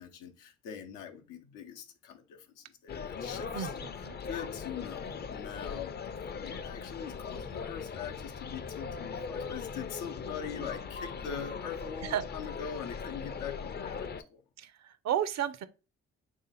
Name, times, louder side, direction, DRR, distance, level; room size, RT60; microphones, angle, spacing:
voice 1, 0.0-14.4, left 7 dB, 90° left, 0.7 m, -42 dB
sound 1, 2.9-14.2, left 5 dB, 35° left, 0.4 m, -40 dB
voice 2, 3.5-4.2 12.0-12.2 14.6-15.6, right 10 dB, 60° right, 0.5 m, -33 dB
3.4 x 2.8 x 4.0 m
supercardioid pair, 55°, 30 cm